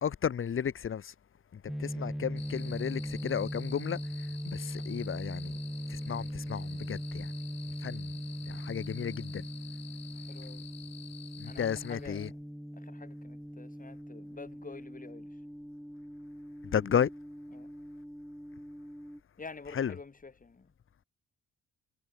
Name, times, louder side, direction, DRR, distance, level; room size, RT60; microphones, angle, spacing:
voice 1, 0.0-1.1 1.5-5.6 5.9-7.3 7.8-8.2 8.5-9.5 11.4-12.3 16.6-17.1 19.7-19.9, left 8 dB, 45° left, 1.5 m, -33 dB
sound 1, 1.7-19.2, equal, ahead, 4.4 m, -40 dB
sound 2, 2.4-12.3, left 9 dB, 60° left, 4.6 m, -50 dB
voice 2, 10.0-10.7 11.4-12.4 12.7-15.4 17.5-17.7 19.4-20.7, left 4 dB, 25° left, 7.6 m, -48 dB
cardioid pair, 90°, 30 cm